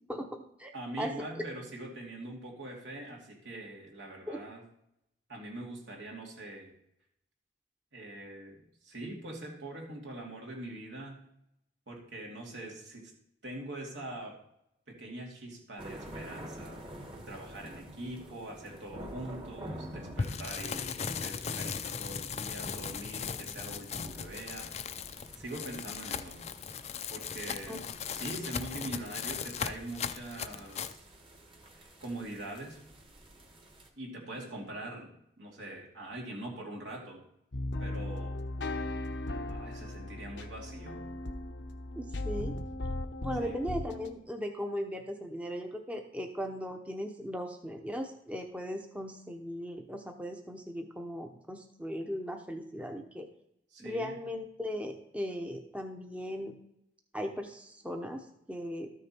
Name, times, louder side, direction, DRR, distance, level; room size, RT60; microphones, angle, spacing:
voice 1, 0.1-0.7 1.0-1.1 4.3-4.4 27.7-27.8 42.0-42.6 43.2-53.3 53.8-56.5 57.1-58.9, equal, 10° right, 4 dB, 0.8 m, -38 dB
voice 2, 0.7-4.6 5.3-6.7 7.9-11.2 11.9-13.1 13.4-14.4 14.9-16.8 17.3-24.8 25.4-26.4 27.1-27.8 28.1-31.0 31.7-32.8 34.0-35.1 35.4-37.2 37.8-38.4 39.5-41.1 43.4-43.6 53.7-54.2, right 1 dB, 85° right, -1 dB, 2.6 m, -43 dB
sound 1, 15.8-33.9, equal, 30° right, 1.3 m, -49 dB
sound 2, 20.2-31.0, left 6 dB, 35° left, 0.4 m, -38 dB
sound 3, 37.5-44.1, left 2 dB, 80° left, 0.8 m, -37 dB
13.0 x 6.5 x 4.4 m, 0.77 s
head